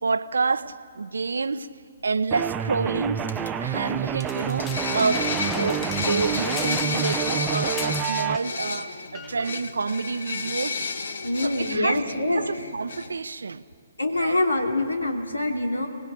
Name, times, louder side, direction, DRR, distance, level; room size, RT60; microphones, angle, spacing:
voice 1, 0.0-1.7 2.0-10.9 11.4-13.6 14.2-14.4, right 4 dB, 75° right, 0.9 m, -28 dB
sound 1, 2.3-8.4, right 9 dB, 15° right, 0.7 m, -28 dB
sound 2, 3.3-3.9 4.3-13.2, left 4 dB, 65° left, 1.4 m, -32 dB
sound 3, 4.2-8.4 8.7-8.9 9.1-9.6 10.3-10.4, left 7 dB, 20° left, 0.8 m, -38 dB
voice 2, 4.7-5.0 11.2-12.7 14.0-15.9, left 2 dB, 90° left, 3.0 m, -25 dB
25.0 x 19.0 x 8.4 m
figure-of-eight pair, 130°, 0 cm